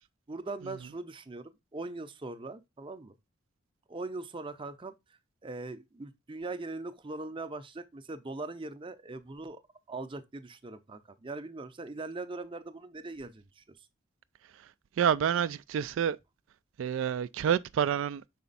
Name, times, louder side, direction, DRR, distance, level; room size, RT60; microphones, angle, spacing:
voice 1, 0.3-1.4 1.7-3.1 3.9-4.9 5.4-9.6 9.9-13.8, right 3 dB, 25° right, 0.6 m, -40 dB
voice 2, 15.0-16.2 16.8-18.2, right 8 dB, 80° right, 0.3 m, -28 dB
5.8 x 4.3 x 3.9 m
head